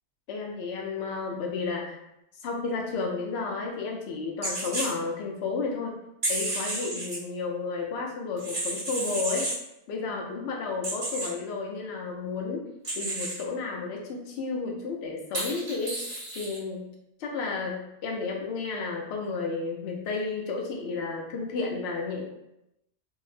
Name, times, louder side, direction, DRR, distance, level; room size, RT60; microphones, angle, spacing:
voice 1, 0.3-2.0 2.4-5.9 6.3-9.5 9.9-12.7 12.9-16.0 16.3-16.9 17.2-22.2, left 4 dB, 70° left, 0 dB, 0.8 m, -32 dB
sound 1, 4.4-4.9 6.2-7.2 8.4-9.6 10.8-11.3 12.8-13.4 15.3-16.6, right 2 dB, 35° right, 0.7 m, -31 dB
2.7 x 2.0 x 3.2 m, 0.84 s
omnidirectional pair, 1.1 m